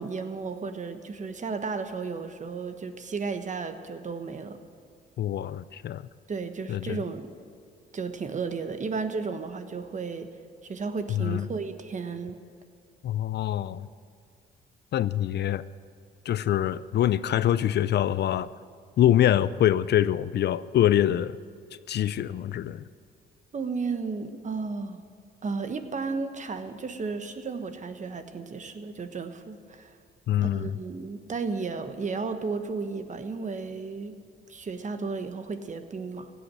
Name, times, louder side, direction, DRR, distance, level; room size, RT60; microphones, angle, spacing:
voice 1, 0.0-4.6 6.3-7.3 7.9-10.3 10.6-12.4 23.5-25.0 25.4-30.0 30.4-34.2 34.5-36.3, right 4 dB, 40° right, 8 dB, 1.2 m, -33 dB
voice 2, 5.2-6.0 6.7-7.0 11.1-11.5 13.0-13.9 14.9-15.6 16.3-18.5 19.0-21.4 21.9-22.8 30.3-30.7, left 11 dB, 60° left, 16 dB, 0.4 m, -24 dB
16.5 x 8.2 x 8.8 m, 2.1 s
cardioid pair, 90°, 20 cm